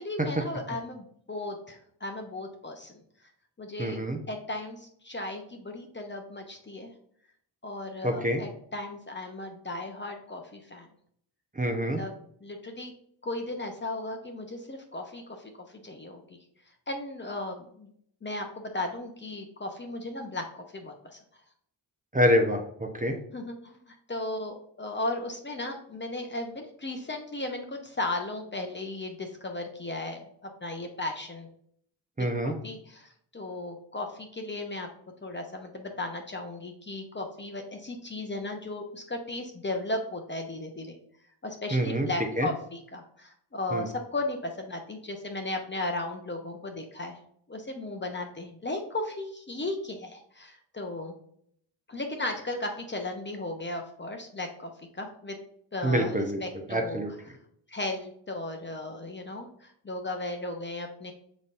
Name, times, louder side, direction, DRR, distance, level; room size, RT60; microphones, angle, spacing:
voice 1, 0.0-3.0 3.6-4.0 4.3-6.9 7.6-10.9 11.8-12.9 13.2-16.2 16.9-17.9 18.2-21.2 23.3-31.5 32.4-34.9 35.2-40.9 41.4-47.2 47.5-51.2 51.9-55.4 55.7-57.0 57.7-61.1, left 2 dB, 25° left, 3 dB, 0.8 m, -36 dB
voice 2, 3.8-4.2 8.0-8.4 11.5-12.0 22.1-23.1 32.2-32.5 41.7-42.1 42.4-42.5 43.7-43.9 55.8-56.4 56.7-57.1, equal, 15° right, 3 dB, 0.8 m, -26 dB
5.2 x 4.0 x 2.5 m, 0.65 s
supercardioid pair, 55°, 49 cm